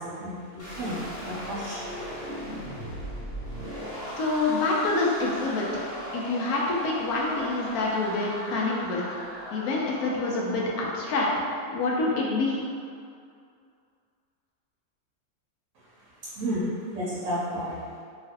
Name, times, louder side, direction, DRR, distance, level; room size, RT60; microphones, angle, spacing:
voice 1, 0.0-1.8 16.3-17.8, equal, 70° right, -8 dB, 1.0 m, -32 dB
sound 1, 0.6-12.6, equal, 60° left, 1.2 m, -38 dB
voice 2, 4.2-5.9 6.1-9.2 9.5-11.3 11.7-12.6, left 3 dB, 85° left, -3 dB, 1.1 m, -27 dB
3.0 x 2.4 x 2.7 m, 2.2 s
omnidirectional pair, 1.5 m